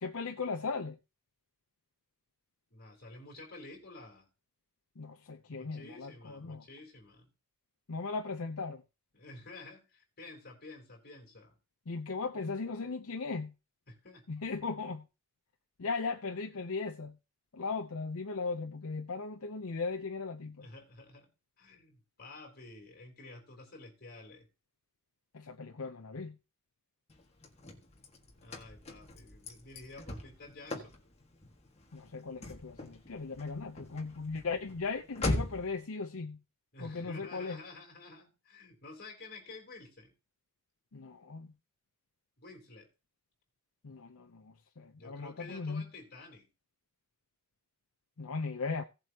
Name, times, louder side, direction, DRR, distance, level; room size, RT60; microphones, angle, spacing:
voice 1, 0.0-1.0 5.0-6.6 7.9-8.8 11.9-13.5 14.3-15.1 15.8-17.2 17.5-20.7 25.3-26.4 31.9-36.4 36.8-37.6 40.9-41.5 43.8-45.9 48.2-48.8, left 4 dB, 70° left, 0.7 m, -37 dB
voice 2, 2.7-4.3 5.5-7.3 9.1-11.6 13.9-14.2 20.6-21.3 21.6-24.5 28.4-31.0 36.7-40.1 42.4-42.9 45.0-46.5, left 2 dB, 45° left, 3.6 m, -51 dB
Car / Slam, 27.1-35.8, left 2 dB, 30° left, 1.7 m, -41 dB
17.0 x 7.8 x 2.9 m
head